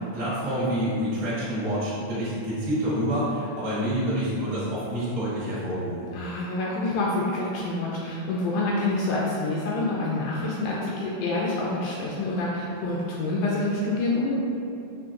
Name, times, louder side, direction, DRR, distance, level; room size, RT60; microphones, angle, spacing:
voice 1, 0.1-6.1, equal, 65° right, -10 dB, 0.7 m, -27 dB
voice 2, 6.1-14.3, left 2 dB, 80° left, -5 dB, 1.9 m, -27 dB
5.7 x 3.1 x 2.5 m, 2.6 s
omnidirectional pair, 3.8 m